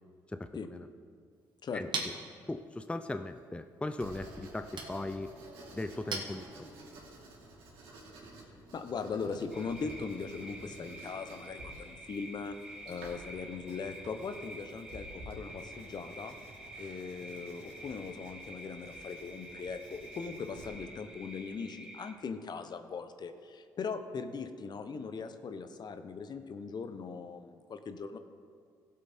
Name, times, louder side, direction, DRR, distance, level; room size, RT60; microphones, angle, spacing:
voice 1, 0.3-0.9 1.7-2.1 2.5-5.4 5.7-6.7, left 2 dB, 10° left, 9 dB, 0.6 m, -38 dB
Chink clink, 1.3-7.0, right 4 dB, 55° right, 1.9 m, -44 dB
voice 2, 1.6-2.0 8.7-12.6 12.9-16.4 16.8-28.2, left 5 dB, 50° left, 9 dB, 0.9 m, -40 dB
Writing, 4.0-20.6, right 1 dB, 75° right, 2.8 m, -52 dB
sound 1, 9.5-22.1, right 1 dB, 5° right, 2.6 m, -49 dB
16.0 x 7.6 x 4.4 m, 2.2 s
supercardioid pair, 55°, 9 cm